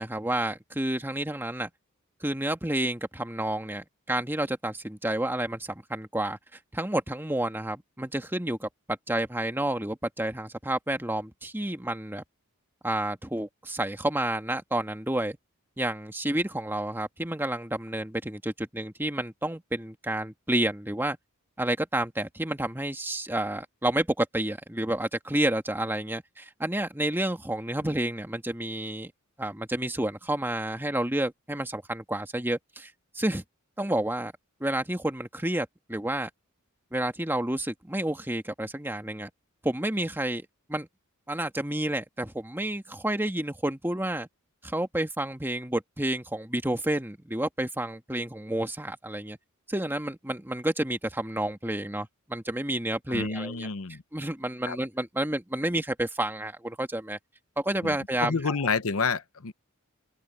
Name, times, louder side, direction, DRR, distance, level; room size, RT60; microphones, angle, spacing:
voice 1, 0.0-1.7 2.2-6.4 6.7-12.2 12.8-15.4 15.8-21.2 21.6-29.1 29.4-33.4 33.8-34.3 34.6-36.3 36.9-39.3 39.6-40.9 41.3-44.3 44.6-49.4 49.7-53.7 54.1-57.2 57.6-58.4, right 1 dB, 10° right, 1.7 m, -30 dB
voice 2, 53.1-54.0 54.6-54.8 57.8-59.5, left 4 dB, 75° left, 0.9 m, -29 dB
head